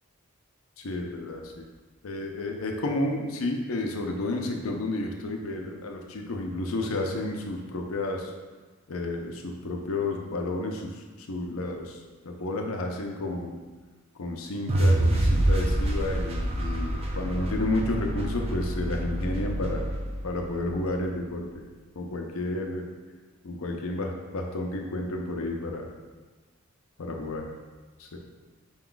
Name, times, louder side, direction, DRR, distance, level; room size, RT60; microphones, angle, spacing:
voice 1, 0.8-1.7 2.0-8.3 8.9-10.9 11.3-12.0 12.2-13.6 14.2-19.8 20.2-21.5 22.0-22.8 23.4-25.9 27.0-27.5 28.0-28.2, left 2 dB, 90° left, 2 dB, 0.6 m, -31 dB
sound 1, 14.7-20.9, right 1 dB, 30° right, 0.5 m, -26 dB
5.3 x 2.3 x 3.8 m, 1.3 s
head